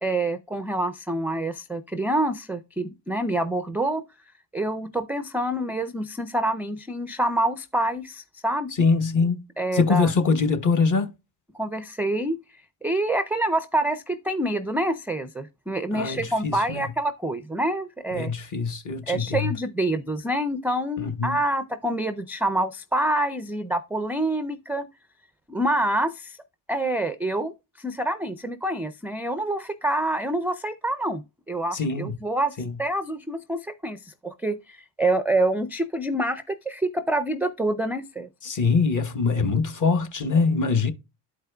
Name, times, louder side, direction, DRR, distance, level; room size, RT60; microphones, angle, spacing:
voice 1, 0.0-4.0 4.5-8.7 9.6-10.1 11.5-12.4 12.8-18.3 19.1-24.9 25.5-26.4 26.7-38.3, right 1 dB, 5° right, 0.3 m, -27 dB
voice 2, 8.8-9.4 9.7-11.1 15.9-16.9 18.1-19.5 21.0-21.4 31.7-32.1 32.6-32.8 38.4-40.9, left 4 dB, 40° left, 1.1 m, -23 dB
12.0 x 4.7 x 2.3 m
supercardioid pair, 75°, 48 cm